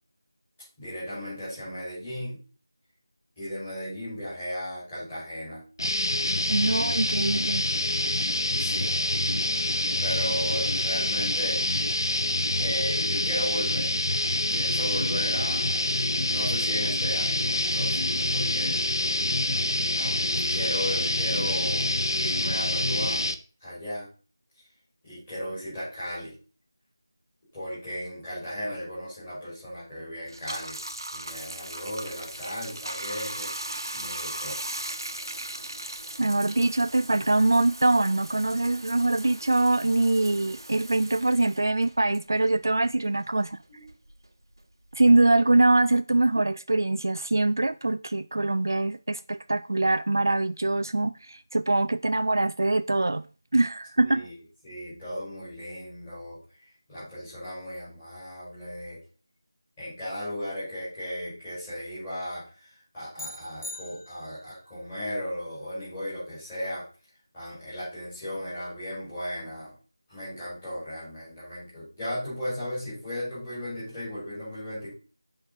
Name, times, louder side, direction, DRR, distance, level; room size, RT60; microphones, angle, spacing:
voice 1, 0.8-2.4 3.4-5.6 8.6-9.2 10.0-11.9 12.6-13.9 14.5-15.8 16.2-18.8 19.9-23.2 23.6-24.1 25.0-26.3 27.5-30.8 31.1-33.5 33.9-34.6 43.7-43.8 54.0-54.3 54.6-56.4 56.9-59.0 59.8-66.9 67.3-69.7 70.1-74.9, equal, 10° left, 5.1 m, -36 dB
sound 1, 5.8-23.3, left 1 dB, 85° left, 0.8 m, -26 dB
voice 2, 6.5-7.6 36.2-43.6 44.9-53.2 53.5-54.3, right 2 dB, 55° right, 0.3 m, -23 dB
Bathtub (filling or washing), 30.3-43.1 43.4-45.2, right 1 dB, 85° right, 1.1 m, -38 dB
sound 2, 63.2-64.6, left 2 dB, 45° left, 1.4 m, -41 dB
9.2 x 5.3 x 4.1 m
figure-of-eight pair, 175°, 2 cm